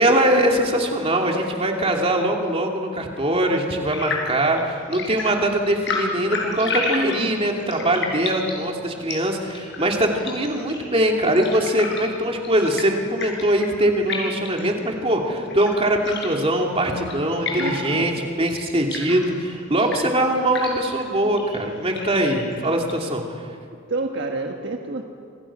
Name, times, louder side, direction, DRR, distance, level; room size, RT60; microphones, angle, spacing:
voice 1, 0.0-23.2, right 1 dB, 30° right, 1 dB, 2.9 m, -22 dB
sound 1, 3.9-23.0, left 3 dB, 55° left, 6.3 m, -33 dB
voice 2, 17.6-18.4 23.9-25.0, right 2 dB, 55° right, 2 dB, 1.5 m, -29 dB
27.0 x 27.0 x 6.2 m, 2.3 s
head